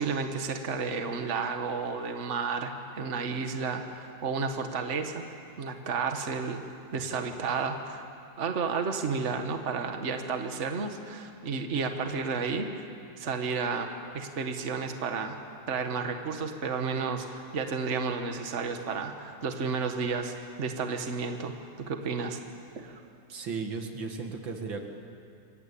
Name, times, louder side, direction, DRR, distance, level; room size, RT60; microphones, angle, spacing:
voice 1, 0.0-5.2 5.6-6.6 6.9-8.0 8.4-12.8 13.2-13.9 14.1-15.4 15.7-22.4 22.7-23.0, right 5 dB, 40° right, 5 dB, 1.7 m, -32 dB
voice 2, 23.3-24.8, right 4 dB, 85° right, 4 dB, 2.8 m, -35 dB
27.5 x 23.0 x 8.6 m, 2.5 s
omnidirectional pair, 2.0 m